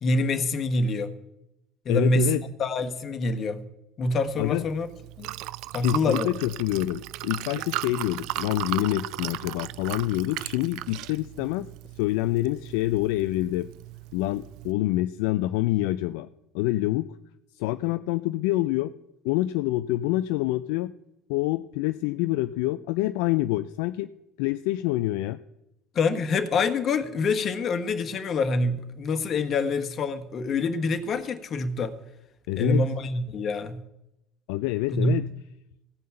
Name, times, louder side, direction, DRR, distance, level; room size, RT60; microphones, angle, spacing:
voice 1, 0.0-1.1 1.8-3.6 4.0-4.9 5.2-5.3 5.7-6.3 25.9-32.0 32.6-33.8 34.9-35.1, left 3 dB, 50° left, 8 dB, 1.3 m, -26 dB
voice 2, 1.9-2.4 4.4-4.6 5.8-11.7 12.0-13.7 14.1-16.3 16.5-17.2 17.6-18.9 19.2-20.9 21.3-24.1 24.4-25.4 32.5-32.9 34.5-35.3, left 16 dB, 75° left, 11 dB, 0.3 m, -26 dB
Liquid, 4.2-14.7, right 17 dB, 70° right, 0.3 m, -37 dB
16.0 x 5.6 x 7.7 m, 0.88 s
hypercardioid pair, 70°, 0 cm